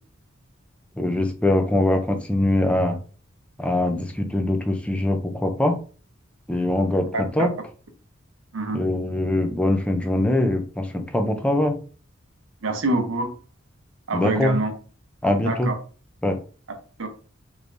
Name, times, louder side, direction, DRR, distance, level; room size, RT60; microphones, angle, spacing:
voice 1, 1.0-3.0 3.6-5.8 6.5-7.5 8.7-11.8 14.1-14.6 15.2-15.7 16.2-16.4, left 1 dB, 5° left, 5 dB, 0.4 m, -22 dB
voice 2, 7.1-7.5 8.5-8.8 12.6-13.4 14.1-14.7 15.4-15.7 17.0-17.1, right 2 dB, 80° right, 5 dB, 0.7 m, -25 dB
3.3 x 3.1 x 2.6 m, 0.38 s
head